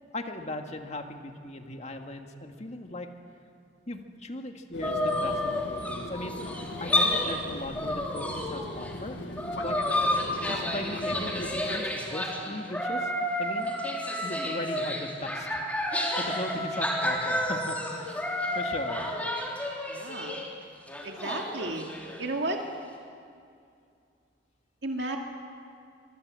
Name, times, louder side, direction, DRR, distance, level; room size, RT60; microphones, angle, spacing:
voice 1, 0.1-3.1 3.9-6.5 6.8-9.8 10.4-13.1 13.4-13.9 14.2-15.8 16.2-18.1 18.5-19.1, left 1 dB, 40° left, 4 dB, 1.8 m, -38 dB
Fixed-wing aircraft airplane, 4.7-11.8, left 2 dB, 70° left, 1.5 m, -39 dB
sound 1, 4.8-7.4 7.8-9.0 9.3-20.5 20.9-22.2, left 1 dB, 10° left, 3.3 m, -30 dB
voice 2, 19.9-20.4 21.0-21.9 22.2-22.6 24.8-25.2, right 2 dB, 70° right, 2 dB, 2.3 m, -33 dB
25.0 x 23.0 x 7.7 m, 2.4 s
head